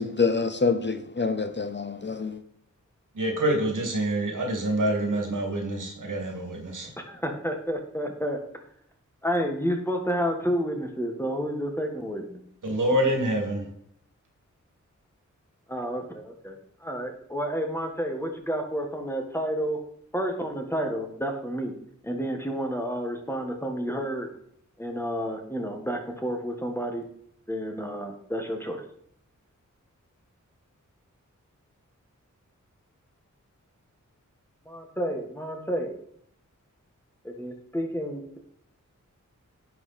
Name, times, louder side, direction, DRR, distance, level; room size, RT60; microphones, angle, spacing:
voice 1, 0.0-2.4, left 4 dB, 35° left, 0.7 m, -26 dB
voice 2, 3.2-6.9 12.6-13.6, right 1 dB, 80° right, 2.4 m, -26 dB
voice 3, 7.1-8.4 9.2-12.4 15.7-19.8 20.1-21.7 22.0-24.3 24.8-27.0 27.5-28.8 34.7-36.0 37.2-38.4, equal, 10° left, 1.6 m, -30 dB
10.5 x 5.9 x 4.3 m
wide cardioid pair, 80°, 31 cm